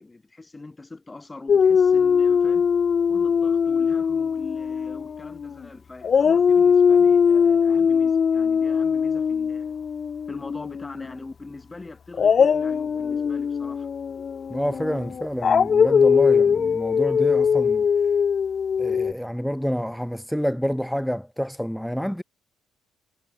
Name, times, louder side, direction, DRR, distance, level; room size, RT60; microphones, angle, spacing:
voice 1, 0.0-2.7 3.1-9.8 10.3-13.9, left 3 dB, 20° left, 7.2 m, -42 dB
Dog, 1.5-5.6 6.0-11.0 12.1-19.1, left 6 dB, 45° left, 0.4 m, -21 dB
voice 2, 14.5-17.9 18.8-22.2, equal, ahead, 2.2 m, -28 dB
supercardioid pair, 75°, 0 cm